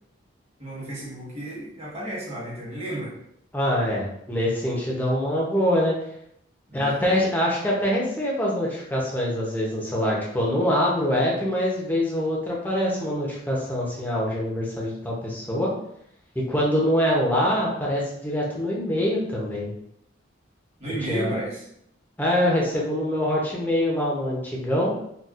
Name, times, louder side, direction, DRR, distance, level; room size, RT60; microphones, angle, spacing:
voice 1, 0.6-3.2 6.7-7.1 20.8-21.6, right 1 dB, 30° right, -6 dB, 1.2 m, -33 dB
voice 2, 3.5-5.9 6.7-15.7 16.3-19.7 21.1-21.4 22.2-24.9, equal, 10° left, -4 dB, 0.6 m, -24 dB
4.1 x 2.2 x 2.4 m, 0.72 s
head